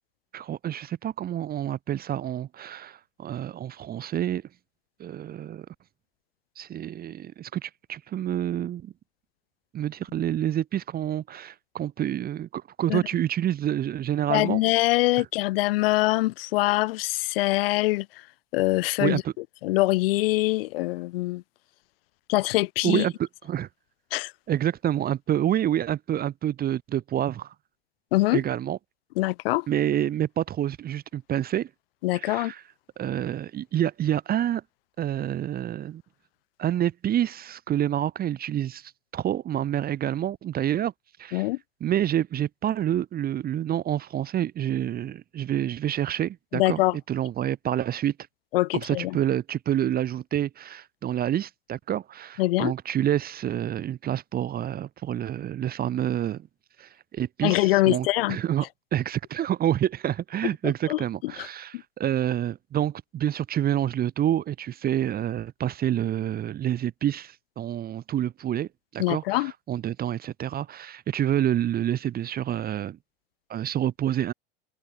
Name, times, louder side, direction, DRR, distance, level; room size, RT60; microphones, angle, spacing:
voice 1, 0.3-4.4 5.0-5.7 6.6-8.9 9.7-14.6 15.2-15.3 19.0-19.3 22.8-23.7 24.5-27.5 28.3-28.8 29.7-31.7 32.1-32.6 33.0-34.6 35.0-36.0 36.6-40.9 41.2-41.5 41.8-46.8 47.1-48.2 48.7-56.5 56.8-58.7 58.9-73.0 73.5-74.3, right 11 dB, 30° right, 0.8 m, -28 dB
voice 2, 14.3-18.1 18.5-19.2 19.6-21.4 22.3-23.0 24.1-24.3 28.1-28.4 29.2-29.7 32.0-32.5 41.3-41.6 46.5-47.0 48.5-49.2 52.4-52.7 57.4-58.4 60.9-61.5 69.0-69.5, left 19 dB, 65° left, 2.1 m, -24 dB
open air
hypercardioid pair, 80°, 31 cm